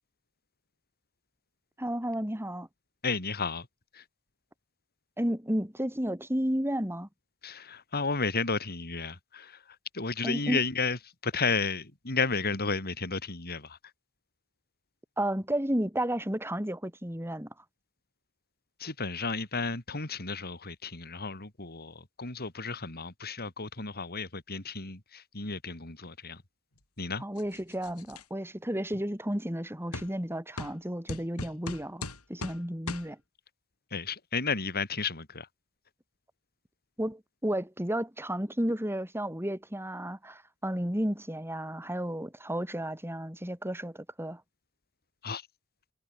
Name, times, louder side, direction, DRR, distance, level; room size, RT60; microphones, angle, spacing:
voice 1, 1.8-2.7 5.2-7.1 10.2-10.6 15.2-17.5 27.2-32.0 32.3-33.2 37.0-44.4, right 1 dB, 10° right, 7.7 m, -32 dB
voice 2, 3.0-3.7 7.4-9.5 9.9-11.0 11.2-13.7 18.8-26.4 27.0-27.2 33.9-35.5 45.2-45.4, left 4 dB, 45° left, 3.6 m, -32 dB
sound 1, 27.4-28.2 28.9-29.0 29.9-30.1 30.6-30.8 31.1-32.6 32.9-33.1, left 2 dB, 80° left, 7.6 m, -39 dB
head